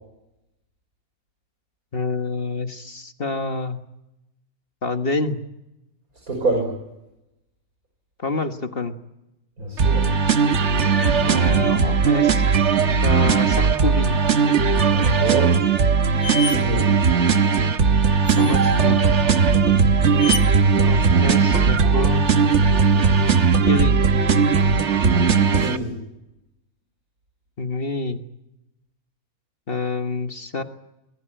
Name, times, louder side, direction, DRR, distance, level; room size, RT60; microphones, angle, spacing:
voice 1, 1.9-3.8 4.8-5.4 8.2-9.0 11.2-12.5 13.0-14.2 18.4-19.0 20.8-22.3 23.7-24.0 27.6-28.2 29.7-30.6, left 3 dB, 40° left, 7 dB, 1.6 m, -27 dB
voice 2, 6.3-6.7 9.6-10.1 14.9-15.6 16.4-16.9 25.5-26.0, right 2 dB, 80° right, 2 dB, 6.0 m, -26 dB
sound 1, 9.8-25.8, right 5 dB, 55° right, 1.4 m, -18 dB
sound 2, 15.6-15.7 16.2-16.6 18.3-18.8 20.2-20.4, left 5 dB, 90° left, 2.7 m, -28 dB
25.0 x 21.5 x 9.0 m, 0.93 s
omnidirectional pair, 1.5 m